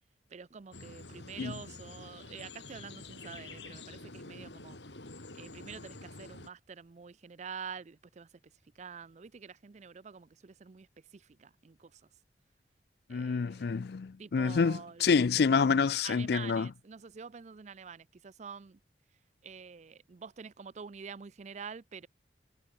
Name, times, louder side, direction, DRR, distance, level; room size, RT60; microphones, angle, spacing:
voice 1, 0.3-4.8 5.3-8.3 8.8-10.9 11.1-12.0 13.1-13.8 14.2-15.1 16.0-18.8 19.4-22.1, right 6 dB, 40° right, 0.5 m, -47 dB
sound 1, 0.7-6.5, left 3 dB, 85° left, 3.7 m, -48 dB
voice 2, 13.1-16.7, left 5 dB, 60° left, 0.4 m, -27 dB
head